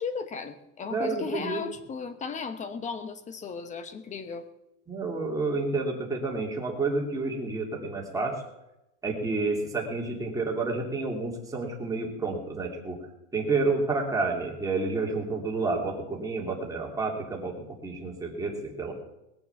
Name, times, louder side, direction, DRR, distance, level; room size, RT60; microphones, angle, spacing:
voice 1, 0.0-4.5, left 5 dB, 15° left, 11 dB, 1.1 m, -35 dB
voice 2, 0.9-1.6 4.9-8.4 9.0-13.0 13.3-18.9, right 3 dB, 10° right, -1 dB, 2.8 m, -30 dB
20.5 x 7.0 x 7.1 m, 0.87 s
supercardioid pair, 160°, 45 cm